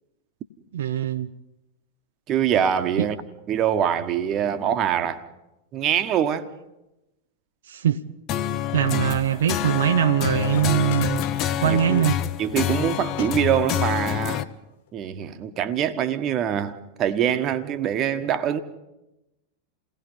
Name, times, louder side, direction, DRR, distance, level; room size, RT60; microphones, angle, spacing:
voice 1, 0.7-1.3 3.0-3.1 7.7-8.0 8.7-11.2 11.6-12.2, right 10 dB, 60° right, 0.7 m, -22 dB
voice 2, 2.3-3.2 3.5-5.2 5.7-6.5 11.6-12.0 12.4-14.5 14.9-18.6, right 9 dB, 35° right, 1.4 m, -24 dB
sound 1, 8.3-14.4, left 11 dB, 35° left, 0.9 m, -27 dB
sound 2, 10.3-12.3 12.5-12.8 13.1-13.3 13.5-14.0 14.9-15.0, left 10 dB, 55° left, 8.0 m, -41 dB
28.5 x 19.0 x 5.5 m
figure-of-eight pair, 90°, 0 cm